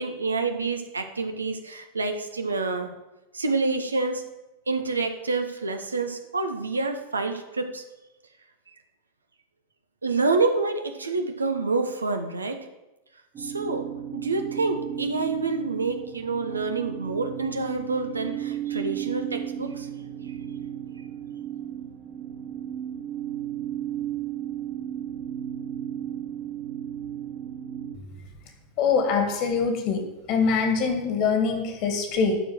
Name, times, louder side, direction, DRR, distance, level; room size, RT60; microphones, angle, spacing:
voice 1, 0.0-2.9 3.3-4.2 4.7-7.8 10.0-12.6 13.4-13.9 14.1-19.9, right 3 dB, 75° right, 7 dB, 1.1 m, -27 dB
sound 1, 13.3-28.0, right 10 dB, 30° right, 1.5 m, -34 dB
voice 2, 28.8-30.0 30.3-32.4, left 5 dB, 45° left, 5 dB, 2.2 m, -23 dB
12.5 x 4.7 x 7.7 m, 0.99 s
figure-of-eight pair, 90°, 0 cm